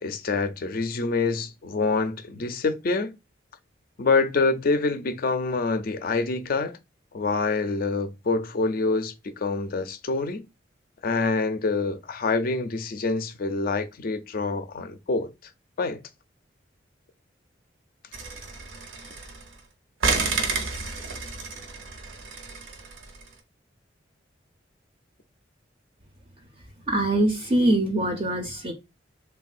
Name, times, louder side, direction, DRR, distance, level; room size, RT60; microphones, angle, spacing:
voice 1, 0.0-3.1 4.0-6.8 7.1-10.4 11.0-15.3 15.8-16.0, left 3 dB, 50° left, 0.4 m, -26 dB
sound 1, 18.1-19.6 20.0-23.3, right 4 dB, 80° right, 0.7 m, -30 dB
voice 2, 26.9-28.7, right 1 dB, 30° right, 0.4 m, -23 dB
3.4 x 2.2 x 2.4 m
head